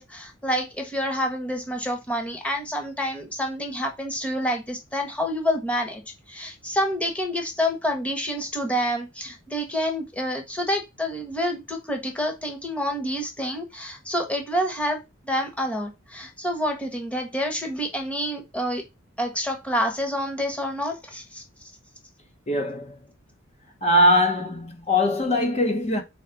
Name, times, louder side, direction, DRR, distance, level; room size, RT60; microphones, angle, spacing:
voice 1, 0.0-6.0 6.3-18.8 19.2-21.4, equal, 5° left, 1.3 m, -28 dB
voice 2, 22.5-23.0 23.8-26.0, left 1 dB, 30° left, 1.2 m, -21 dB
4.9 x 4.2 x 5.8 m
head